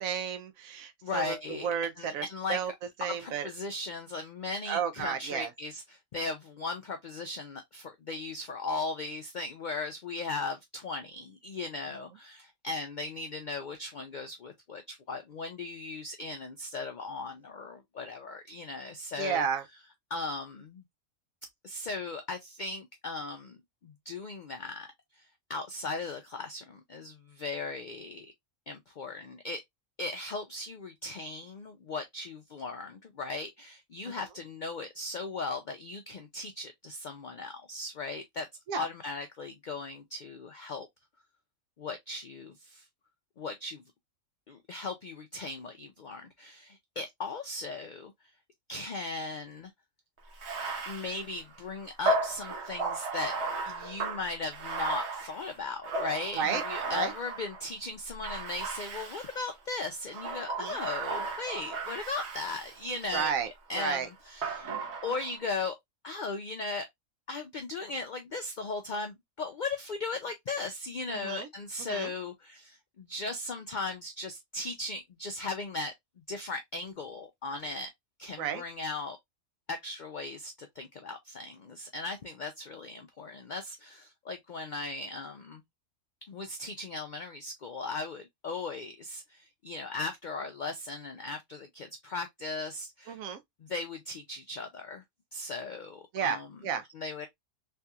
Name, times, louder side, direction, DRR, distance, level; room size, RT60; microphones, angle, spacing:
voice 1, 0.0-2.7 3.0-3.5 4.7-5.5 19.2-19.6 38.7-38.9 56.3-56.6 56.9-57.1 60.6-60.8 63.1-63.5 63.8-64.1 71.1-71.5 71.8-72.1 78.4-78.6 93.1-93.4 96.1-96.9, right 7 dB, 80° right, 1.0 m, -32 dB
voice 2, 1.0-1.7 2.0-2.6 3.2-19.4 20.1-20.8 21.6-24.9 25.1-28.3 28.7-29.6 30.0-38.5 38.8-40.9 41.8-42.9 43.4-43.8 44.5-48.1 48.7-49.7 50.9-53.4 53.7-63.3 63.7-64.7 65.0-65.8 66.0-66.9 67.3-75.9 76.3-77.9 78.2-79.2 79.7-85.6 86.3-93.2 93.6-95.0 95.3-96.5 96.9-97.3, left 3 dB, 70° left, 0.4 m, -37 dB
Bathtub (filling or washing), 50.3-57.7 58.2-59.5 60.1-63.3 64.4-65.4, right 3 dB, 60° right, 1.0 m, -35 dB
3.3 x 2.8 x 2.3 m
omnidirectional pair, 1.4 m